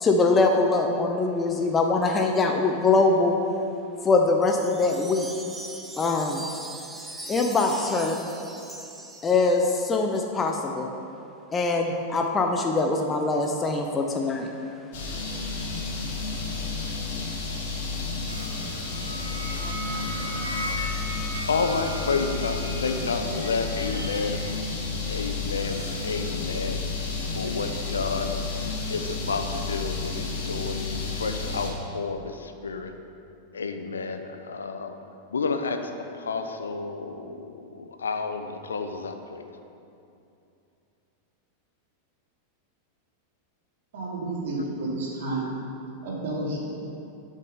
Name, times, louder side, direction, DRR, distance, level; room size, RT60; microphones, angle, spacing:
voice 1, 0.0-3.4 4.0-5.3 6.0-6.4 7.3-8.2 9.2-10.9 11.5-14.5, left 3 dB, 20° left, 3 dB, 0.8 m, -23 dB
Wind chime, 4.4-9.8, right 2 dB, 10° right, 0.9 m, -40 dB
sound 1, 14.9-31.7, left 4 dB, 55° left, 2.0 m, -31 dB
sound 2, 18.3-26.1, equal, 75° right, 2.0 m, -38 dB
voice 2, 21.5-24.4 25.1-26.9 27.3-28.4 28.9-30.9 31.1-32.9 33.5-34.9 35.3-39.5, left 4 dB, 70° left, 7 dB, 0.8 m, -30 dB
voice 3, 43.9-45.5 46.0-46.7, right 2 dB, 55° right, -3 dB, 2.6 m, -30 dB
11.5 x 6.5 x 5.6 m, 2.7 s
figure-of-eight pair, 90°, 0 cm